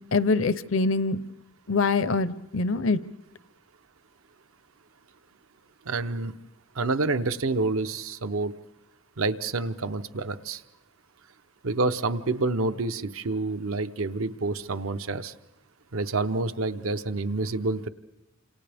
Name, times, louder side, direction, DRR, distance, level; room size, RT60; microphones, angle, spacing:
voice 1, 0.1-1.2 1.7-3.0, left 3 dB, 70° left, 15 dB, 0.7 m, -24 dB
voice 2, 5.9-6.3 6.8-8.5 9.2-10.6 11.6-15.3 15.9-17.9, right 3 dB, 80° right, 10 dB, 0.8 m, -28 dB
29.5 x 27.0 x 3.5 m, 0.94 s
head